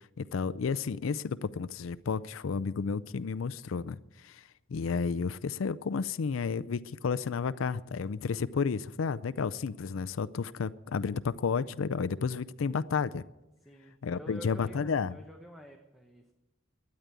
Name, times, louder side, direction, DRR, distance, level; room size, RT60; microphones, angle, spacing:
voice 1, 0.2-4.4 4.7-13.2 14.0-15.1, left 5 dB, 85° left, 0.5 m, -32 dB
voice 2, 13.6-16.3, equal, ahead, 1.0 m, -49 dB
12.5 x 9.8 x 8.1 m
head